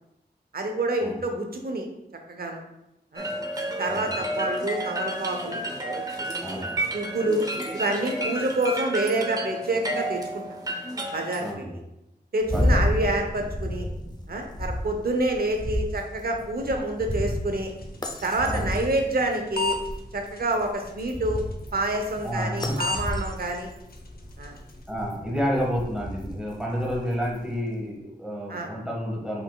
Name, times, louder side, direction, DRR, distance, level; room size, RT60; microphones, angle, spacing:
voice 1, 0.5-1.9 2.3-2.6 3.1-3.3 3.8-5.6 6.4-6.6 6.9-7.4 7.7-10.4 11.1-11.6 12.3-13.9 14.3-17.7 18.2-19.8 20.1-21.4 21.7-23.7 24.4-24.6 28.5-28.7, right 2 dB, 65° right, 3 dB, 0.8 m, -27 dB
sound 1, 3.2-11.5, right 1 dB, 20° right, 0.7 m, -31 dB
voice 2, 6.4-6.8 11.4-11.8 12.5-13.1 18.4-18.7 22.2-22.8 24.9-29.4, equal, 5° right, -3 dB, 1.5 m, -30 dB
sound 2, 12.4-27.6, left 1 dB, 25° left, 0.5 m, -32 dB
sound 3, 17.6-24.8, left 4 dB, 65° left, 0.6 m, -37 dB
5.6 x 3.9 x 2.3 m, 0.89 s
wide cardioid pair, 75°, 17 cm